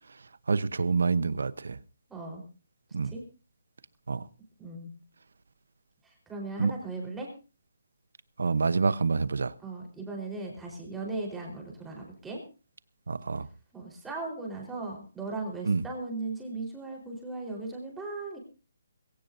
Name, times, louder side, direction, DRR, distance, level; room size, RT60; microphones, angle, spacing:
voice 1, 0.5-1.8 2.9-3.1 4.1-4.2 6.6-6.7 8.4-9.5 13.1-13.5 15.7-15.8, right 4 dB, 75° right, 1.0 m, -27 dB
voice 2, 2.1-2.4 3.0-3.2 4.6-4.9 6.0-7.3 9.6-12.4 13.7-18.4, right 3 dB, 5° right, 4.4 m, -37 dB
21.5 x 17.5 x 2.7 m
hypercardioid pair, 165°, 0 cm